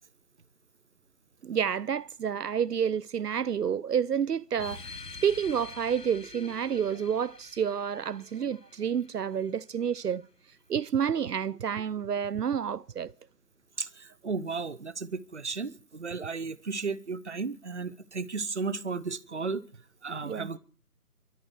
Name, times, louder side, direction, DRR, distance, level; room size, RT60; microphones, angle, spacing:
voice 1, 1.4-5.0 5.2-10.2 10.7-13.1 20.2-20.5, right 8 dB, 80° right, 0.6 m, -29 dB
sound 1, 4.6-9.6, left 4 dB, 90° left, 1.5 m, -47 dB
voice 2, 13.8-19.6 20.0-20.6, right 4 dB, 45° right, 0.8 m, -34 dB
27.0 x 13.0 x 3.2 m
figure-of-eight pair, 165°, 47 cm